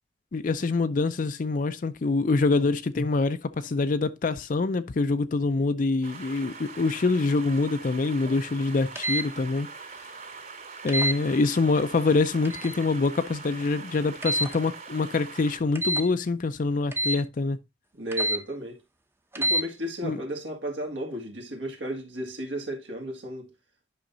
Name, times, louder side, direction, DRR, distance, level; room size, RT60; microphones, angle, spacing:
voice 1, 0.3-9.7 10.8-17.6 20.0-20.2, left 3 dB, 45° left, 0.4 m, -25 dB
sound 1, 6.0-15.6, right 5 dB, 50° right, 2.6 m, -43 dB
sound 2, 9.0-9.3 10.9-11.2 12.4-12.8 14.2-14.6 15.8-16.1 16.9-17.2 18.1-18.4 19.3-19.6, right 1 dB, 15° right, 0.6 m, -27 dB
voice 2, 18.0-18.8 19.3-23.5, equal, 75° right, 1.8 m, -34 dB
10.0 x 5.7 x 2.6 m
head